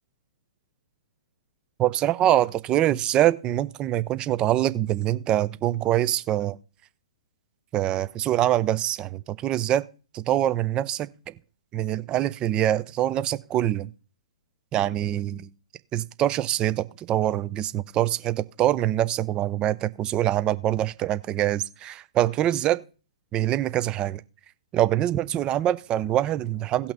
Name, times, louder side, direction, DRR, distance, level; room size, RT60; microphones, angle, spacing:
voice 1, 1.8-6.6 7.7-9.8 10.1-11.3 11.7-13.9 14.7-15.5 15.9-22.8 23.3-24.2 24.7-26.9, right 12 dB, 25° right, 0.6 m, -24 dB
17.5 x 5.8 x 4.0 m
figure-of-eight pair, 120°, 4 cm